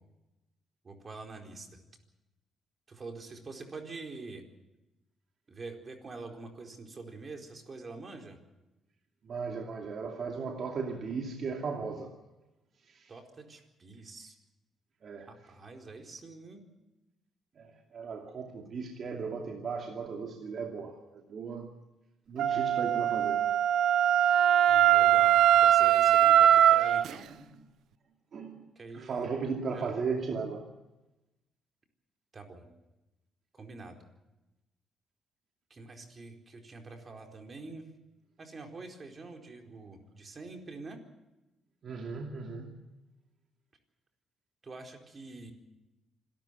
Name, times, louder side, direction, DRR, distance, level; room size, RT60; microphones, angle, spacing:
voice 1, 0.8-1.8 2.9-4.4 5.5-8.4 13.1-14.3 15.2-16.6 24.7-27.3 28.8-29.3 29.7-29.9 32.3-32.7 33.5-34.0 35.7-37.9 38.4-41.0 44.6-45.5, right 3 dB, 35° right, 4.4 m, -45 dB
voice 2, 9.3-12.1 12.9-13.1 15.0-15.3 17.6-21.7 22.3-23.5 26.9-27.0 28.3-28.7 28.9-30.7 41.8-42.7, right 5 dB, 55° right, 2.6 m, -36 dB
Wind instrument woodwind instrument, 22.4-27.1, right 11 dB, 80° right, 0.7 m, -22 dB
26.5 x 13.0 x 9.3 m
cardioid pair, 90°, 0 cm